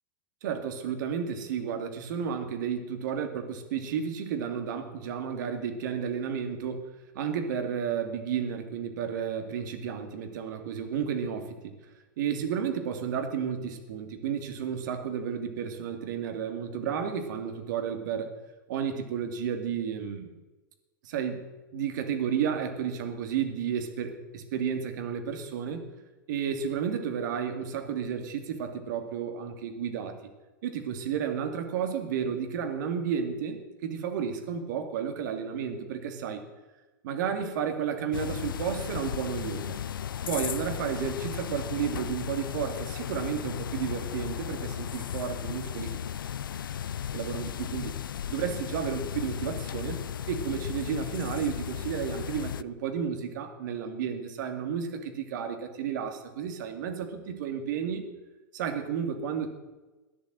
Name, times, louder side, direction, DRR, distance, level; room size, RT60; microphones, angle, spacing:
voice 1, 0.4-6.9 7.1-11.8 12.2-18.3 18.7-20.3 21.0-21.4 21.7-25.8 26.3-30.2 30.6-36.4 37.0-39.8 40.3-46.0 47.1-47.9 48.3-50.0 50.3-58.0 58.5-59.5, right 7 dB, 65° right, 6 dB, 2.6 m, -32 dB
sound 1, 38.1-52.6, left 9 dB, 80° left, 0.5 m, -35 dB
14.0 x 11.0 x 7.8 m, 1.1 s
hypercardioid pair, 105°, 11 cm